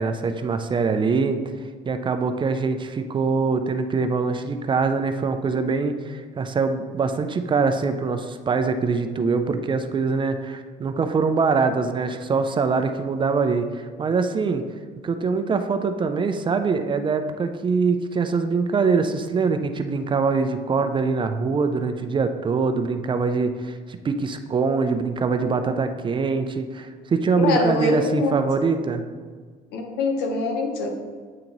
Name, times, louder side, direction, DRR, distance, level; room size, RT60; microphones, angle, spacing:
voice 1, 0.0-1.4 1.9-14.6 15.0-29.0, right 4 dB, 30° right, 8 dB, 0.4 m, -23 dB
voice 2, 27.3-28.3 29.7-30.9, left 3 dB, 85° left, 3 dB, 1.0 m, -24 dB
8.4 x 2.9 x 3.9 m, 1.5 s
cardioid pair, 110°, 17 cm